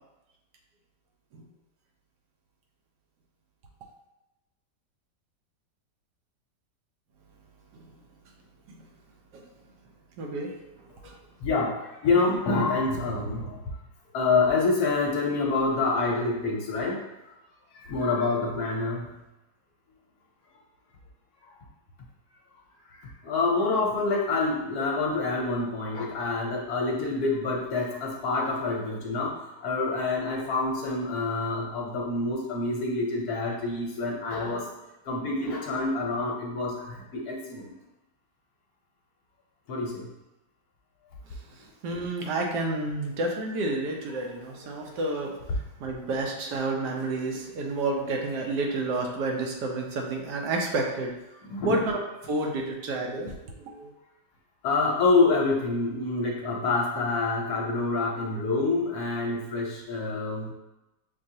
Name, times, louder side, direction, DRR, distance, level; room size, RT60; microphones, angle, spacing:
voice 1, 10.2-10.5 11.0-11.1 41.8-45.4 45.8-51.1 51.7-52.0 52.3-53.9, right 2 dB, 75° right, 1 dB, 1.2 m, -30 dB
voice 2, 11.4-13.6 14.1-17.0 17.7-19.2 22.9-34.7 35.0-37.7 39.7-40.1 51.4-51.7 54.6-60.5, left 3 dB, 65° left, -2 dB, 1.1 m, -27 dB
6.1 x 2.3 x 2.7 m, 0.97 s
omnidirectional pair, 1.9 m